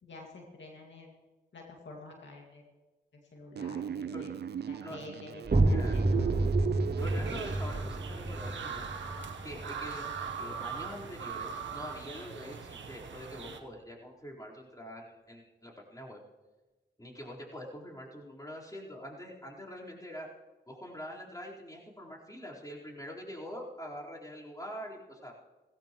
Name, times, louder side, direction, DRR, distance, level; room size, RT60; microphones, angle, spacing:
voice 1, 0.0-1.1 1.5-2.6 3.1-4.3 4.7-6.4, left 2 dB, 80° left, 0 dB, 2.1 m, -49 dB
sound 1, 3.6-7.6, right 8 dB, 65° right, 0.4 m, -37 dB
sound 2, 5.4-11.0, right 2 dB, 50° right, 2.6 m, -30 dB
voice 2, 5.7-6.0 7.0-8.9 9.4-16.2 17.0-20.3 20.7-25.3, equal, 20° left, -4 dB, 4.2 m, -44 dB
sound 3, 7.0-13.6, right 6 dB, 85° right, 1.0 m, -41 dB
17.5 x 16.0 x 3.1 m, 1.2 s
cardioid pair, 40°, 19 cm